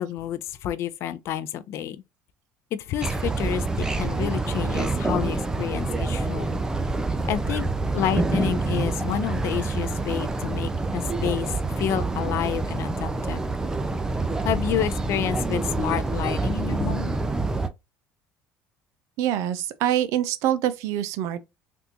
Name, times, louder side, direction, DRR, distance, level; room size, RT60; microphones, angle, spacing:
voice 1, 0.0-2.0 2.7-6.6 7.3-7.7 7.9-13.4 14.4-17.2, left 11 dB, 55° left, 0.4 m, -29 dB
sound 1, 3.0-17.7, right 3 dB, 10° right, 0.4 m, -27 dB
voice 2, 19.2-21.4, right 11 dB, 70° right, 0.5 m, -25 dB
3.5 x 2.4 x 2.8 m
cardioid pair, 120°, 5 cm